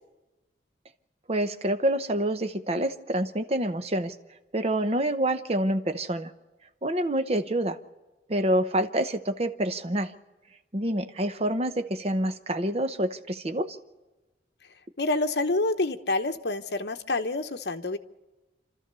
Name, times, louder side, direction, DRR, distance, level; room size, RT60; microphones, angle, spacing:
voice 1, 1.3-4.1 4.5-6.3 6.8-7.8 8.3-10.1 10.7-13.8, right 1 dB, 35° right, 9 dB, 0.9 m, -27 dB
voice 2, 15.0-18.0, left 2 dB, 65° left, 7 dB, 1.0 m, -27 dB
28.0 x 13.5 x 6.9 m, 1.1 s
head